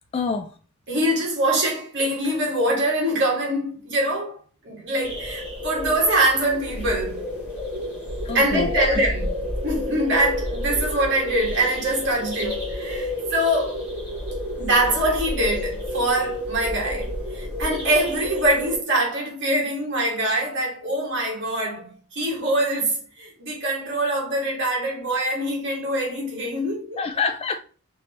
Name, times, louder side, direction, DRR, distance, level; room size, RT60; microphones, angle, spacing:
voice 1, 0.1-0.5 8.3-9.0 27.0-27.6, left 4 dB, 25° left, 0.3 m, -26 dB
voice 2, 0.9-4.4 4.6-7.2 8.3-13.8 14.6-27.0, right 1 dB, 55° right, 1.9 m, -24 dB
sound 1, 5.0-18.8, left 1 dB, 5° right, 2.2 m, -30 dB
6.0 x 3.0 x 2.9 m
head